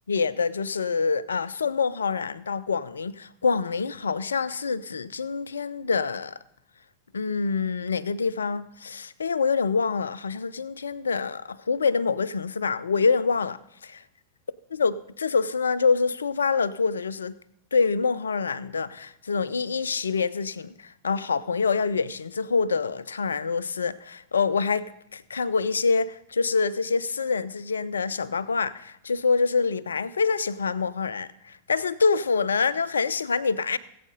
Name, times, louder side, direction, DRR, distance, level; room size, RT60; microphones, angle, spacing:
voice 1, 0.1-6.4 7.1-14.0 14.7-17.4 17.7-24.9 25.1-33.8, left 5 dB, 70° left, 0.5 m, -26 dB
18.5 x 8.4 x 3.9 m
figure-of-eight pair, 90°, 0 cm